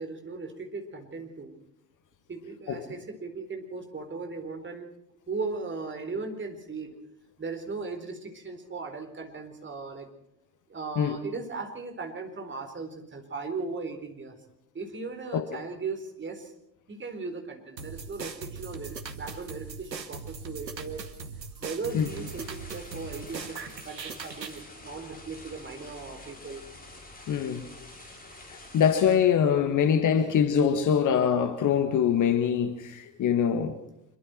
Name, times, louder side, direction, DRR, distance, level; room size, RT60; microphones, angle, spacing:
voice 1, 0.0-1.5 2.3-4.9 5.3-6.9 7.4-10.1 10.7-14.4 14.7-16.5 16.9-21.0 21.6-26.6, right 4 dB, 25° right, 4.2 m, -37 dB
sound 1, 17.8-24.6, right 5 dB, 80° right, 1.4 m, -40 dB
sound 2, 21.9-29.1, left 1 dB, 20° left, 6.5 m, -48 dB
voice 2, 27.3-27.7 28.5-33.8, left 8 dB, 35° left, 1.6 m, -24 dB
25.5 x 23.0 x 4.5 m
figure-of-eight pair, 60°, 49 cm